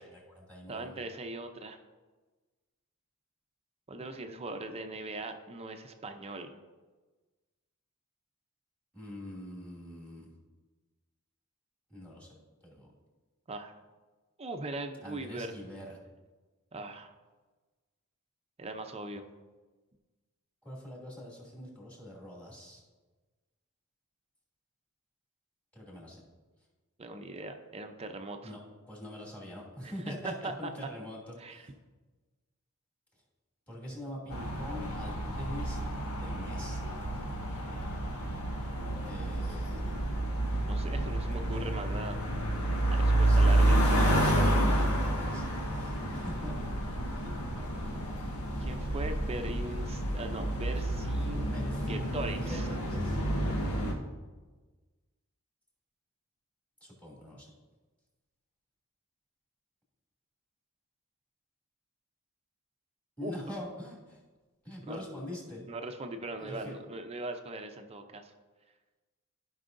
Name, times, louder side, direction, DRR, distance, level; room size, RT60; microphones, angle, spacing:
voice 1, 0.0-1.0 8.9-10.3 11.9-12.4 12.6-12.9 15.0-16.0 20.6-22.8 25.7-26.2 28.4-28.6 28.9-31.7 33.7-37.0 39.1-39.8 43.1-46.9 47.2-48.0 48.5-48.7 51.2-53.2 56.8-57.5 63.2-64.2 64.6-65.6 66.4-66.7, left 1 dB, 5° left, -4 dB, 2.5 m, -44 dB
voice 2, 0.7-1.8 3.9-6.5 13.5-13.8 14.4-15.5 16.7-17.1 18.6-19.3 27.0-28.5 29.8-29.9 30.2-30.7 31.4-31.7 40.6-42.2 42.9-43.8 48.6-51.6 51.9-52.7 63.2-63.3 64.9-65.0 65.7-68.3, right 2 dB, 30° right, 6 dB, 0.6 m, -40 dB
sound 1, 34.3-53.9, right 1 dB, 85° left, 1.6 m, -29 dB
15.0 x 5.5 x 2.6 m, 1.3 s
head